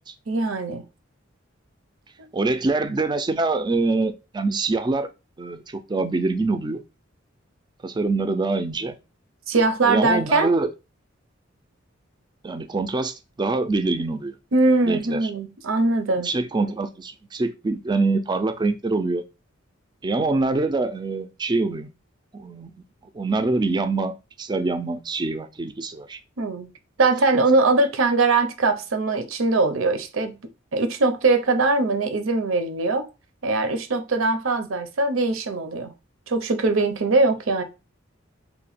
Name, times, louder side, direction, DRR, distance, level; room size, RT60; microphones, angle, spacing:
voice 1, 0.3-0.8 9.5-10.5 14.5-16.3 26.4-26.7 27.0-30.4 30.7-33.1 33.4-35.9 36.3-37.6, right 3 dB, 80° right, 0.7 m, -21 dB
voice 2, 2.3-5.1 5.4-6.8 7.8-9.0 9.8-10.7 12.4-14.3 14.9-15.2 16.2-19.2 20.0-21.9 22.3-22.7 23.1-24.1 24.4-26.2, right 3 dB, 20° right, 0.4 m, -24 dB
2.9 x 2.2 x 4.2 m
head